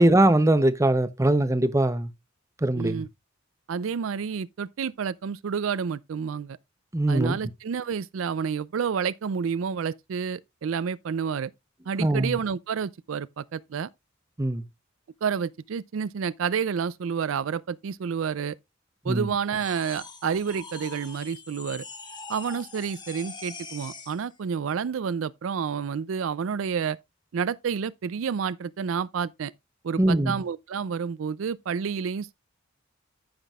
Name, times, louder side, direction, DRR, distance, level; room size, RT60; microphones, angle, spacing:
voice 1, 0.0-2.1 2.6-3.0 6.9-7.4 12.0-12.3 14.4-14.6 19.1-19.3 30.0-30.4, right 1 dB, 15° right, 0.7 m, -21 dB
voice 2, 2.7-3.1 3.7-6.6 7.1-11.5 11.9-13.9 15.2-18.5 19.0-21.8 22.3-27.0 27.3-29.5 29.8-32.3, right 6 dB, 80° right, 0.4 m, -29 dB
sound 1, 19.5-24.2, left 4 dB, 20° left, 1.4 m, -43 dB
14.5 x 5.9 x 2.3 m
head